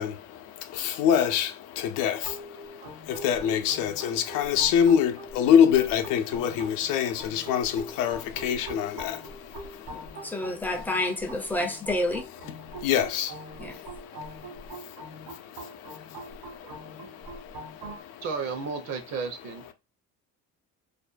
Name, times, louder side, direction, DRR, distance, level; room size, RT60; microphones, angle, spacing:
voice 1, 0.0-10.9 11.4-11.5 12.4-18.3, left 8 dB, 90° left, 0.6 m, -27 dB
sound 1, 2.2-18.0, right 1 dB, 70° right, 1.0 m, -43 dB
voice 2, 10.2-12.2 13.6-13.8, left 1 dB, 5° left, 0.4 m, -29 dB
voice 3, 18.2-19.7, right 5 dB, 55° right, 0.7 m, -33 dB
2.5 x 2.2 x 2.4 m
cardioid pair, 140°, 32 cm